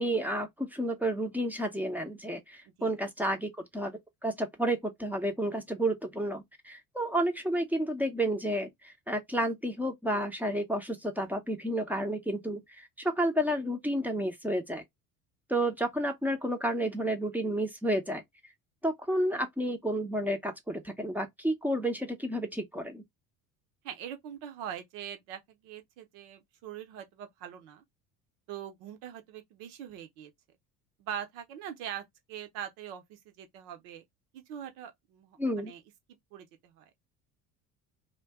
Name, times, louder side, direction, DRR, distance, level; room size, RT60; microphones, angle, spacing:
voice 1, 0.0-3.9 4.2-14.8 15.5-18.2 18.8-23.0 35.4-35.7, right 1 dB, 5° right, 0.7 m, -31 dB
voice 2, 23.8-27.8 28.5-30.3 31.0-34.0 34.3-35.8 36.3-36.8, right 9 dB, 60° right, 0.9 m, -42 dB
2.5 x 2.2 x 3.5 m
hypercardioid pair, 65°, 46 cm